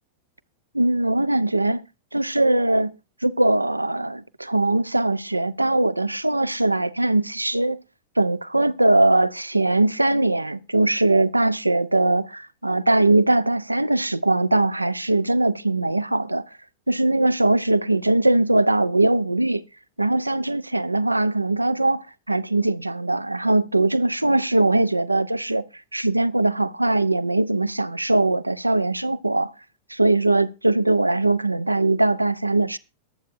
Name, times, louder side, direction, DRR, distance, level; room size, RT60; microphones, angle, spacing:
voice 1, 0.7-1.8 2.1-2.9 3.2-7.8 8.2-16.4 16.9-19.6 20.0-25.6 25.9-29.5 29.9-32.8, right 2 dB, 85° right, 0.5 m, -21 dB
23.0 x 8.4 x 2.6 m
figure-of-eight pair, 90°, 0 cm